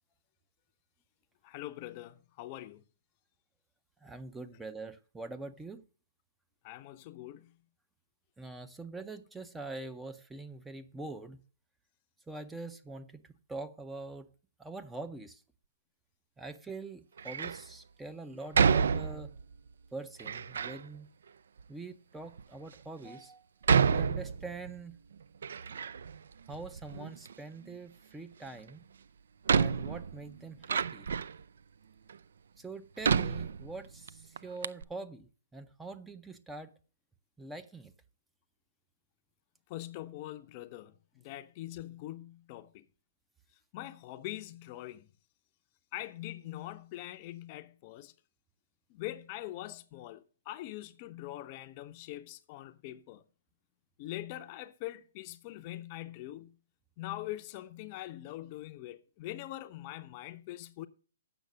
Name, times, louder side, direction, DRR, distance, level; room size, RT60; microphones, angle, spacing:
voice 1, 1.4-2.8 6.6-7.6 39.7-42.9 43.7-45.1 45.9-48.1 48.9-53.2 54.0-56.6 57.0-60.9, left 15 dB, 35° left, 0.6 m, -43 dB
voice 2, 4.0-5.8 8.4-11.4 12.3-14.3 14.6-15.4 16.4-19.3 19.9-21.1 21.7-23.5 23.8-25.0 26.5-28.8 29.5-31.1 32.6-36.7 37.4-37.9, right 3 dB, 5° right, 0.5 m, -44 dB
Door, 17.2-17.7 18.5-19.5 20.2-20.8 21.6-21.7 22.4-22.5 23.6-24.8 25.1-26.2 26.5-27.3 28.7-28.8 29.5-31.4 32.1-32.2 33.0-34.1 34.4-34.5 34.6-34.8, right 6 dB, 65° right, 0.3 m, -29 dB
7.9 x 6.3 x 6.3 m
hypercardioid pair, 130°, 0 cm